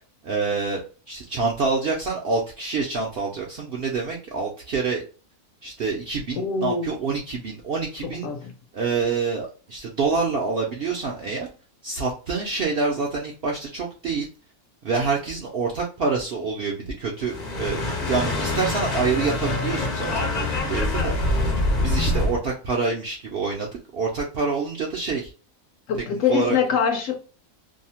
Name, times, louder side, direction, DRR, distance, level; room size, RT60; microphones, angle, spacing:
voice 1, 0.2-5.0 5.6-8.3 8.7-11.5 11.8-14.3 14.8-17.8 18.1-21.5 21.8-23.7 23.9-25.3 26.3-26.6, right 4 dB, 65° right, 0.6 m, -26 dB
voice 2, 6.4-6.9 8.0-8.5 25.9-27.2, left 6 dB, 70° left, 0.8 m, -24 dB
sound 1, 17.2-22.4, left 2 dB, 40° left, 0.6 m, -25 dB
2.7 x 2.0 x 2.8 m
omnidirectional pair, 1.6 m